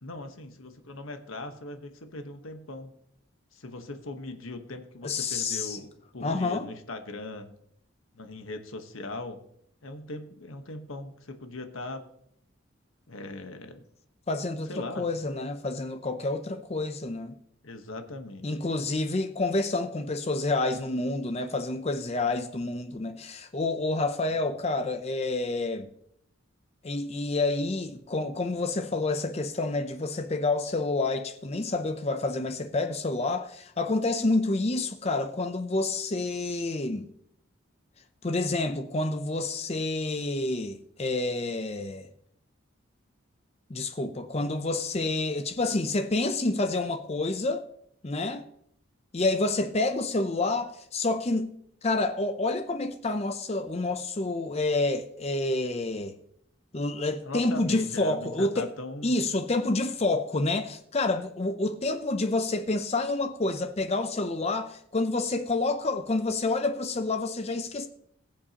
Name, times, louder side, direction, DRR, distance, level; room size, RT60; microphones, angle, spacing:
voice 1, 0.0-2.9 3.5-7.5 8.1-9.4 9.8-12.0 13.1-13.9 14.6-15.1 17.6-18.5 22.2-22.4 57.2-59.2, left 2 dB, 85° left, 1.2 m, -39 dB
voice 2, 5.0-5.8 6.2-6.7 14.3-17.4 18.4-25.9 26.8-37.1 38.2-42.1 43.7-47.7 48.0-48.4 49.1-51.5 51.8-56.2 56.7-58.7 59.0-67.9, left 2 dB, 30° left, 0.5 m, -28 dB
21.5 x 7.4 x 2.9 m
head